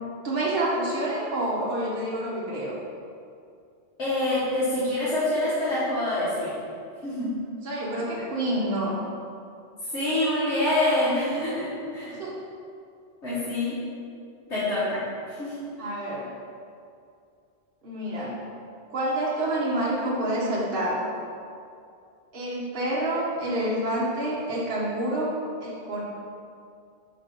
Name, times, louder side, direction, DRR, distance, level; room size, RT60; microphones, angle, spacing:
voice 1, 0.2-2.7 7.6-9.0 12.0-12.3 15.8-16.3 17.8-18.4 18.9-21.1 22.3-25.3 25.6-26.0, right 1 dB, 55° right, -5 dB, 1.2 m, -28 dB
voice 2, 4.0-6.5 7.0-7.4 9.9-12.2 13.2-13.8 14.5-15.7, left 1 dB, 90° left, -13 dB, 1.8 m, -26 dB
5.8 x 3.4 x 5.1 m, 2.4 s
omnidirectional pair, 1.2 m